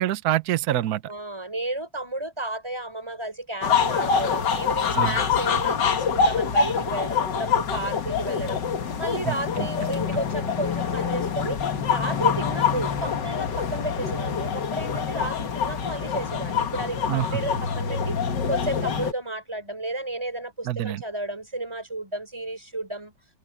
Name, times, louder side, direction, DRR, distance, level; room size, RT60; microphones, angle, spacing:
voice 1, 0.0-1.1 4.9-5.2 9.2-9.3 17.1-17.4 20.7-21.0, right 13 dB, 65° right, 1.1 m, -25 dB
voice 2, 1.1-8.6 9.0-11.6 11.9-18.2 18.5-23.1, right 1 dB, 15° right, 3.9 m, -32 dB
sound 1, 3.6-19.1, left 6 dB, 70° left, 2.1 m, -25 dB
omnidirectional pair, 2.0 m